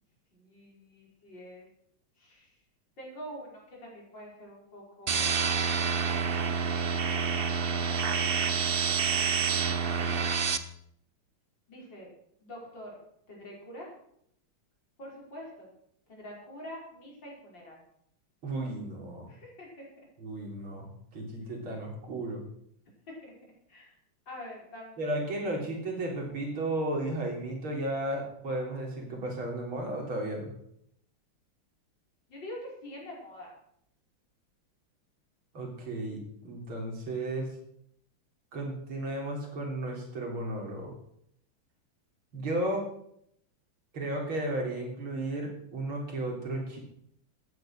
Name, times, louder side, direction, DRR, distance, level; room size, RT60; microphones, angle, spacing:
voice 1, 0.3-1.7 2.2-2.5 3.0-5.3 5.8-6.0 7.8-8.1 11.7-12.1 12.4-13.0 13.3-13.9 15.0-15.7 16.1-17.8 19.3-20.1 23.1-23.3 23.7-24.0 24.3-25.1 32.3-33.5, equal, 60° left, -3 dB, 5.8 m, -45 dB
sound 1, 5.1-10.6, right 5 dB, 65° right, 0.5 m, -28 dB
voice 2, 18.4-19.3 20.2-22.4 25.0-30.5 35.5-37.5 38.5-40.9 42.3-42.9 43.9-46.8, right 1 dB, 80° right, 0 dB, 4.4 m, -34 dB
14.0 x 9.5 x 6.3 m, 0.72 s
omnidirectional pair, 2.2 m